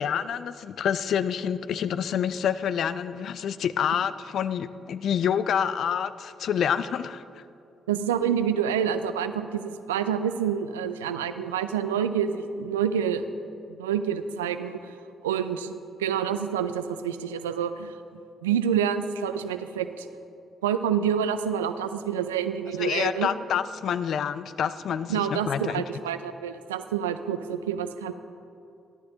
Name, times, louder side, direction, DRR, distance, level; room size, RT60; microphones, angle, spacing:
voice 1, 0.0-7.4 22.8-25.8, left 8 dB, 55° left, 14 dB, 0.4 m, -27 dB
voice 2, 7.9-13.2 13.8-14.8 15.2-17.9 18.4-20.0 20.6-23.3 25.1-28.1, right 8 dB, 75° right, 10 dB, 0.5 m, -27 dB
27.5 x 11.5 x 2.9 m, 2.6 s
figure-of-eight pair, 40°, 0 cm